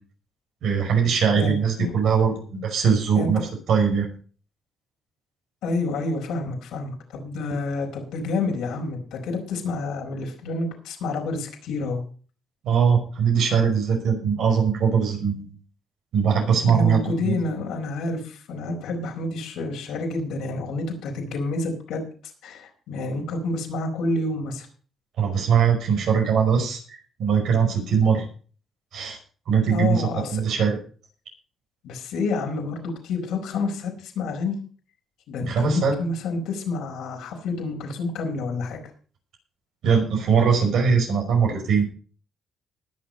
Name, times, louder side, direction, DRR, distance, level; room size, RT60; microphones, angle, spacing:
voice 1, 0.6-4.1 12.6-15.5 16.1-17.4 25.2-28.2 28.9-29.2 29.5-30.8 35.4-36.0 39.8-41.8, right 6 dB, 75° right, 2 dB, 5.3 m, -21 dB
voice 2, 1.3-2.0 3.2-3.3 5.6-12.0 16.6-22.0 22.4-24.7 29.6-30.4 31.8-34.6 35.3-38.8, left 3 dB, 85° left, 2 dB, 4.6 m, -29 dB
19.5 x 6.8 x 5.3 m, 0.41 s
cardioid pair, 90°, 0 cm